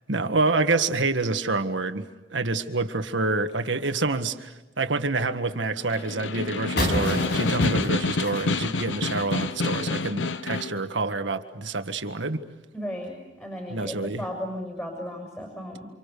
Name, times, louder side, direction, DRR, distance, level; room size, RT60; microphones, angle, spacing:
voice 1, 0.1-12.4 13.7-14.2, right 3 dB, 80° right, 8 dB, 1.6 m, -27 dB
Snare drum, 5.8-10.8, left 3 dB, 85° left, 1.0 m, -28 dB
sound 1, 6.8-9.5, left 1 dB, 65° left, 5.8 m, -30 dB
voice 2, 12.7-15.9, equal, 10° left, 2 dB, 6.1 m, -35 dB
29.0 x 27.0 x 6.9 m, 1.1 s
head